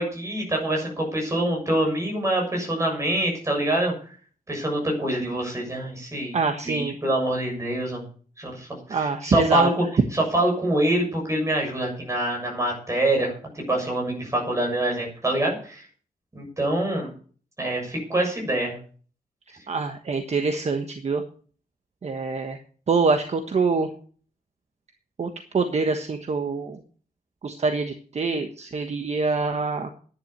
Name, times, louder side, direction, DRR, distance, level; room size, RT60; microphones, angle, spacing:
voice 1, 0.0-3.9 4.5-6.3 6.6-8.0 8.4-9.8 10.1-15.8 16.3-17.1 17.6-18.8, right 1 dB, 20° right, 0 dB, 6.9 m, -25 dB
voice 2, 6.3-7.0 8.9-9.7 19.7-21.2 22.0-22.6 22.9-23.9 25.2-26.8 27.4-29.9, right 4 dB, 45° right, 6 dB, 1.3 m, -25 dB
11.0 x 10.5 x 6.6 m, 0.43 s
wide cardioid pair, 150°, 15 cm